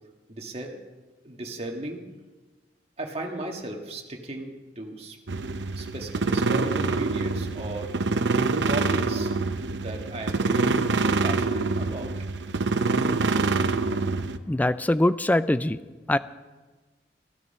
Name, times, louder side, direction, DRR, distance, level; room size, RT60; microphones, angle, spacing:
voice 1, 0.3-0.8 1.2-2.0 3.0-5.2 5.8-8.0 8.7-9.3 9.7-10.9 11.2-12.1, right 1 dB, 35° right, 2 dB, 1.7 m, -36 dB
sound 1, 5.3-14.4, right 3 dB, 80° right, 0.7 m, -25 dB
voice 2, 14.5-15.8 16.1-16.2, left 1 dB, 10° left, 14 dB, 0.4 m, -22 dB
15.0 x 12.5 x 5.5 m, 1.2 s
head